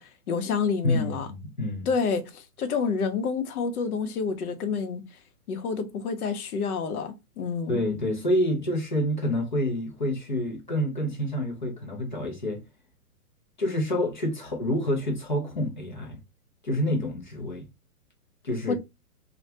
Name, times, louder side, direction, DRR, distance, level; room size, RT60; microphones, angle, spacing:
voice 1, 0.0-1.3 1.9-5.0 5.5-7.8 18.7-18.8, left 5 dB, 75° left, 0.7 m, -28 dB
voice 2, 0.8-1.9 7.7-12.6 13.6-16.2 16.6-17.7 18.4-18.7, left 1 dB, 35° left, 0.4 m, -28 dB
2.2 x 2.1 x 2.6 m
hypercardioid pair, 170°, 45 cm